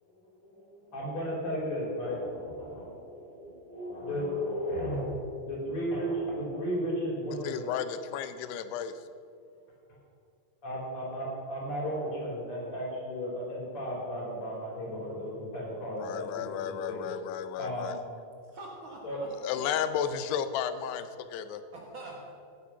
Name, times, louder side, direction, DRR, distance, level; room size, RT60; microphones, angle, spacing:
voice 1, 0.4-7.6 9.9-10.0 10.6-16.6 16.9-17.0 17.6-18.0 19.0-19.2, equal, 35° left, -4 dB, 4.5 m, -34 dB
voice 2, 7.4-8.9 16.0-18.0 19.4-21.6, left 9 dB, 85° left, 11 dB, 2.8 m, -33 dB
voice 3, 18.5-20.0 21.7-22.3, right 2 dB, 55° right, -1 dB, 1.4 m, -45 dB
17.0 x 8.6 x 5.8 m, 2.4 s
omnidirectional pair, 4.7 m